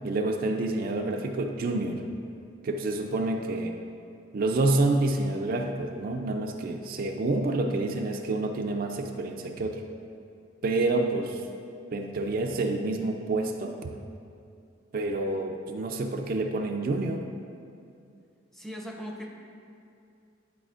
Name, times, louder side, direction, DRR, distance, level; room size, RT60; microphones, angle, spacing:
voice 1, 0.0-2.0 2.6-3.8 4.3-9.8 10.6-11.4 11.9-13.8 14.9-17.2, right 2 dB, 50° right, 3 dB, 0.4 m, -28 dB
voice 2, 18.5-19.3, equal, ahead, 0 dB, 0.5 m, -38 dB
10.5 x 4.2 x 2.4 m, 2.5 s
head